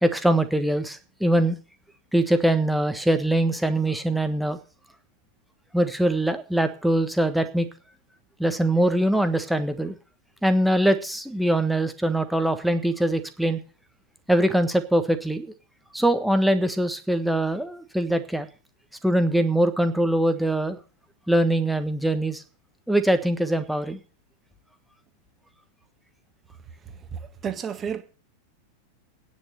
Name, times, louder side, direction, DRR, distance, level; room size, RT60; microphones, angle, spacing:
voice 1, 0.0-1.6 2.1-4.6 5.7-7.7 8.4-9.9 10.4-13.6 14.3-15.5 15.9-18.5 19.0-20.8 21.3-22.4 22.9-24.0, right 1 dB, ahead, 1.4 m, -22 dB
voice 2, 27.1-28.0, right 7 dB, 25° right, 1.7 m, -31 dB
9.8 x 7.1 x 9.2 m
figure-of-eight pair, 90°, 0 cm